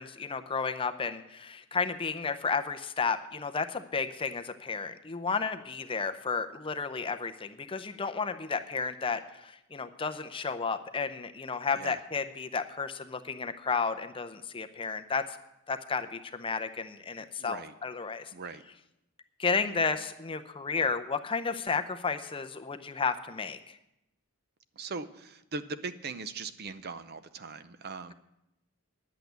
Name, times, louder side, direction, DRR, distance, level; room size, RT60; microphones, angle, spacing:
voice 1, 0.0-15.2 15.7-18.3 19.4-23.8, left 5 dB, 25° left, 9 dB, 0.6 m, -32 dB
voice 2, 17.2-17.7 18.3-18.6 24.8-28.1, right 4 dB, 45° right, 12 dB, 0.6 m, -40 dB
10.5 x 8.3 x 8.0 m, 0.88 s
head